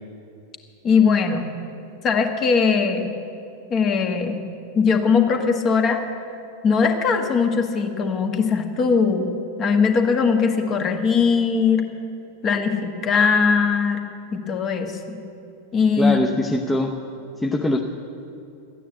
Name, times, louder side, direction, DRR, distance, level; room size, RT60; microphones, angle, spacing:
voice 1, 0.8-1.5 2.0-3.1 3.7-4.4 4.7-6.0 6.6-9.3 9.6-11.8 12.4-14.0 14.3-15.2 15.7-16.2, left 5 dB, 30° left, 4 dB, 1.5 m, -20 dB
voice 2, 16.0-16.9 17.4-17.8, left 1 dB, 5° left, 0 dB, 0.8 m, -22 dB
14.0 x 9.3 x 8.3 m, 2.7 s
figure-of-eight pair, 90°, 0 cm